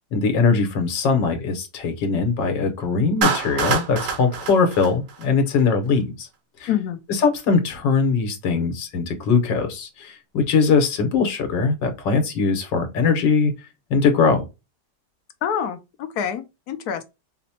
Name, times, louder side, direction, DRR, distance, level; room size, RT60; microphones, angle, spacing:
voice 1, 0.1-6.3 6.6-6.7 7.1-13.5 13.9-14.4, left 4 dB, 85° left, 1.6 m, -21 dB
Clapping, 3.2-5.6, right 5 dB, 60° right, 0.6 m, -26 dB
voice 2, 6.7-7.0 15.4-17.0, left 9 dB, 70° left, 1.0 m, -26 dB
4.9 x 2.1 x 2.7 m
omnidirectional pair, 1.9 m